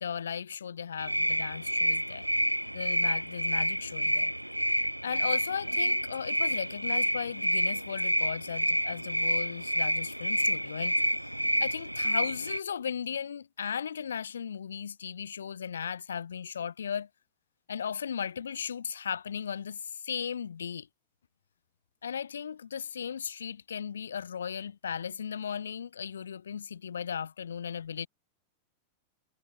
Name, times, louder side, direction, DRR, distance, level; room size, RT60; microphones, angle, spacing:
voice 1, 0.0-2.3 2.7-4.3 5.0-11.2 11.6-17.1 17.7-20.9 22.0-28.1, left 7 dB, 70° left, 0.4 m, -36 dB
sound 1, 1.0-12.6, equal, 90° right, 0.3 m, -29 dB
figure-of-eight pair, 90°, 0 cm